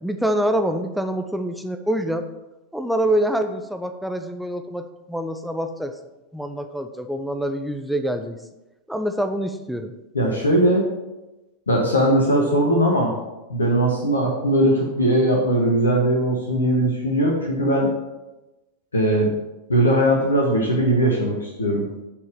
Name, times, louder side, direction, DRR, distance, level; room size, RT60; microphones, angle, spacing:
voice 1, 0.0-2.3 2.7-5.9 6.3-8.4 8.9-9.9, right 1 dB, ahead, 6 dB, 0.7 m, -25 dB
voice 2, 10.1-10.9 11.7-13.2 13.5-17.9 18.9-19.4 19.7-21.9, right 1 dB, 75° left, -1 dB, 1.4 m, -19 dB
7.2 x 4.8 x 6.8 m, 1.0 s
figure-of-eight pair, 90°, 0 cm